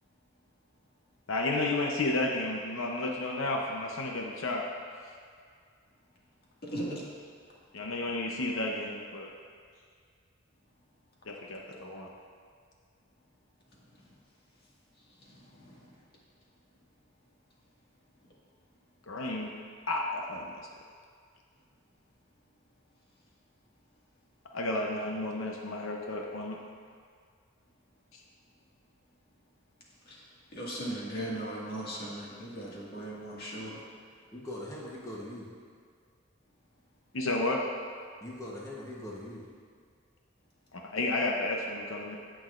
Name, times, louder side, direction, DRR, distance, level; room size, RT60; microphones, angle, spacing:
voice 1, 1.3-4.6 7.7-9.3 11.3-12.1 19.1-19.5 19.9-20.6 24.5-26.6 28.1-28.2 37.1-37.6 40.7-42.2, left 2 dB, 80° left, 0 dB, 0.8 m, -32 dB
voice 2, 6.6-7.0 15.2-15.9 30.1-30.3 30.5-33.8, right 1 dB, 50° left, -5 dB, 1.9 m, -38 dB
voice 3, 34.3-35.5 38.2-39.4, left 1 dB, 15° left, -5 dB, 1.0 m, -41 dB
16.5 x 6.2 x 2.5 m, 2.1 s
head